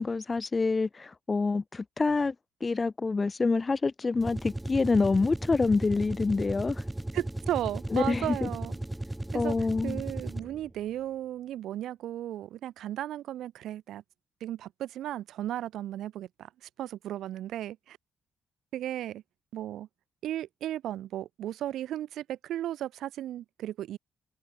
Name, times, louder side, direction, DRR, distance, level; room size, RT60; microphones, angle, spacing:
voice 1, 0.0-2.3 2.6-6.8 7.9-8.5 9.3-10.0, left 4 dB, 30° left, 0.6 m, -27 dB
sound 1, 4.2-10.7, right 1 dB, 10° right, 1.5 m, -36 dB
voice 2, 7.1-8.7 9.3-9.5 9.8-14.0 14.4-16.5 16.8-18.0 18.7-19.2 19.5-19.9 20.2-24.0, right 12 dB, 80° right, 7.2 m, -35 dB
open air
cardioid pair, 90°, 0 cm